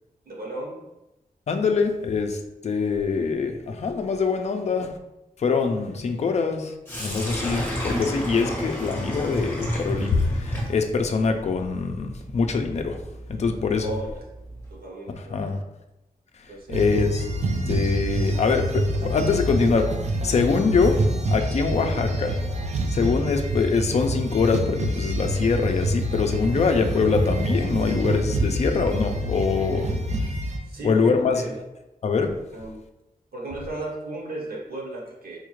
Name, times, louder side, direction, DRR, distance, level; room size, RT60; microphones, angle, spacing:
voice 1, 0.3-0.8 13.8-14.2 14.7-15.6 16.5-16.8 21.7-22.0 30.7-31.6 32.5-32.8 33.3-35.4, right 1 dB, 90° right, -1 dB, 0.9 m, -35 dB
voice 2, 1.5-4.9 5.4-6.7 7.0-13.0 13.3-13.9 15.2-15.6 16.7-17.3 17.7-19.9 20.2-21.0 21.3-22.4 22.9-29.9 30.8-31.5 32.0-32.3, left 4 dB, 50° left, 5 dB, 0.4 m, -24 dB
Sink (filling or washing), 6.9-14.8, equal, 15° left, 1.1 m, -32 dB
sound 1, 16.7-30.6, right 1 dB, 50° right, 0.4 m, -26 dB
4.1 x 2.4 x 3.0 m, 0.95 s
wide cardioid pair, 165°, 15 cm